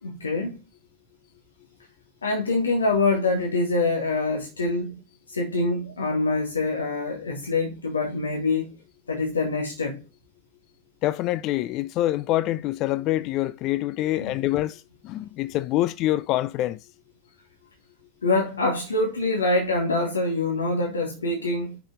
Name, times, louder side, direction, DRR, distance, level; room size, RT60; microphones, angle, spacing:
voice 1, 0.0-0.6 2.2-5.0 5.3-8.7 9.1-10.0 14.2-14.3 18.2-21.8, left 2 dB, 75° left, 1.5 m, -25 dB
voice 2, 11.0-16.8, left 15 dB, 40° left, 0.4 m, -26 dB
5.7 x 4.9 x 6.6 m
figure-of-eight pair, 90°, 0 cm